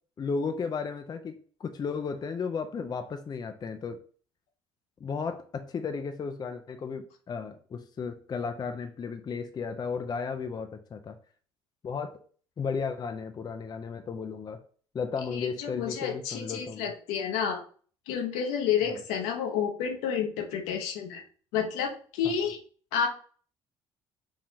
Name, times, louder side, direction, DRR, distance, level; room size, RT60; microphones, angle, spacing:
voice 1, 0.2-4.0 5.0-11.2 11.8-12.2 12.6-14.6 14.9-16.9 18.9-19.0, left 5 dB, 30° left, 7 dB, 0.5 m, -34 dB
voice 2, 15.3-17.6 18.1-21.2 21.5-22.6 22.9-23.1, left 7 dB, 65° left, 4 dB, 0.8 m, -30 dB
4.7 x 2.9 x 2.7 m, 0.43 s
figure-of-eight pair, 50°, 14 cm